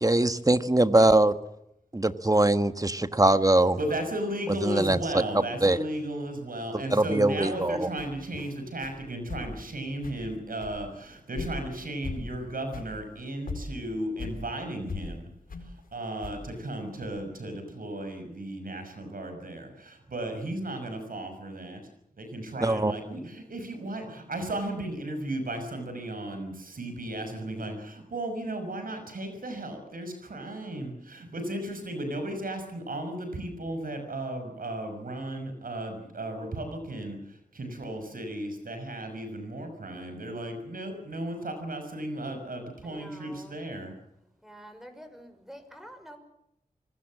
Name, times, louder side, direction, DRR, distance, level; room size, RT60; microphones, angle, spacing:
voice 1, 0.0-1.3 1.9-3.8 4.6-5.2 5.6-5.8 6.7-7.9 22.6-22.9, right 2 dB, 25° right, 11 dB, 1.5 m, -22 dB
voice 2, 3.8-15.3 15.9-21.8 22.2-43.9, right 1 dB, 80° right, 6 dB, 6.1 m, -35 dB
sound 1, 7.5-7.6 8.0-8.5 8.8-9.0 9.3-9.7 10.0-10.3 10.6-11.0 11.3-11.8 12.0-12.4 12.7-12.9 13.2-13.3 13.5-14.4 14.9-15.1 15.5-15.7 16.2-16.7 17.0-17.1, left 3 dB, 85° left, 4.8 m, -38 dB
voice 3, 42.8-43.6 44.4-46.2, equal, 5° right, 7 dB, 5.9 m, -47 dB
25.5 x 19.0 x 7.6 m, 0.81 s
cardioid pair, 50°, 14 cm